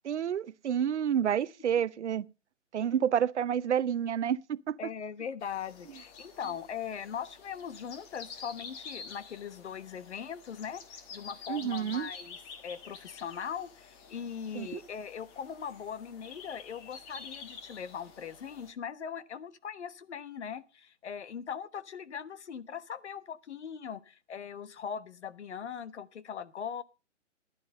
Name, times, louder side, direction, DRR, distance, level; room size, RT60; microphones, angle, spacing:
voice 1, 0.0-2.3 2.7-4.8 11.5-12.1 14.5-14.8, right 9 dB, 65° right, 0.7 m, -29 dB
voice 2, 4.8-12.4 12.6-26.8, left 7 dB, 65° left, 1.3 m, -40 dB
sound 1, 5.4-18.7, left 5 dB, 20° left, 1.4 m, -49 dB
14.5 x 11.0 x 5.4 m
hypercardioid pair, 155°, 37 cm